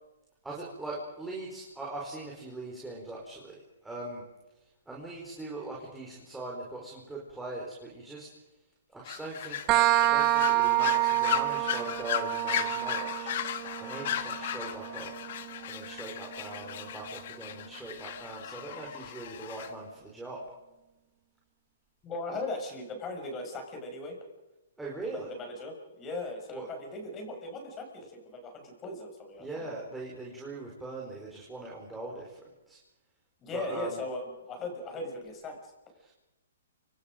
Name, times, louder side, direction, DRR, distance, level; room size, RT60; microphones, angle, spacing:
voice 1, 0.4-4.2 4.9-8.3 8.9-13.3 13.8-15.1 15.7-20.4 24.8-25.3 26.5-26.7 29.4-32.4 32.7-32.8 33.5-34.0 36.0-36.1, right 2 dB, 5° right, -4 dB, 4.7 m, -41 dB
sound 1, 9.0-19.7, left 10 dB, 50° left, 1.7 m, -36 dB
sound 2, 9.7-17.1, right 17 dB, 30° right, 1.1 m, -29 dB
voice 2, 22.0-24.2 25.1-29.7 33.4-35.7, left 2 dB, 20° left, 3 dB, 6.5 m, -38 dB
29.0 x 26.0 x 5.2 m, 1.0 s
hypercardioid pair, 150°, 0 cm